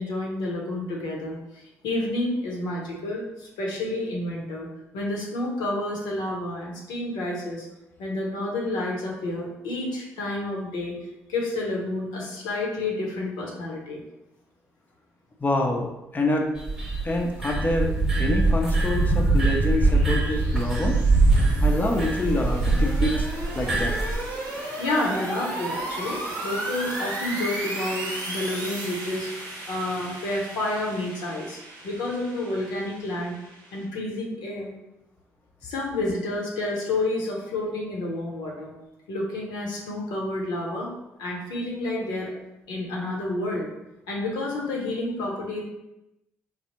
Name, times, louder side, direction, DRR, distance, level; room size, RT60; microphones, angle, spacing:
voice 1, 0.0-4.7 4.9-7.7 8.0-11.0 11.3-14.0 24.5-29.3 29.7-33.3 33.7-34.7 35.6-38.7 39.1-40.9 41.2-42.3 42.7-43.7 44.1-45.6, left 2 dB, 70° left, -2 dB, 0.7 m, -30 dB
voice 2, 15.4-16.5 17.0-21.0 21.6-23.3 23.5-23.9, left 1 dB, 20° left, 1 dB, 0.5 m, -26 dB
sound 1, 16.6-24.2, right 2 dB, 5° right, 1.0 m, -22 dB
sound 2, 18.1-33.8, right 1 dB, 65° right, 0.8 m, -36 dB
3.2 x 2.0 x 2.9 m, 0.92 s
hypercardioid pair, 50°, 8 cm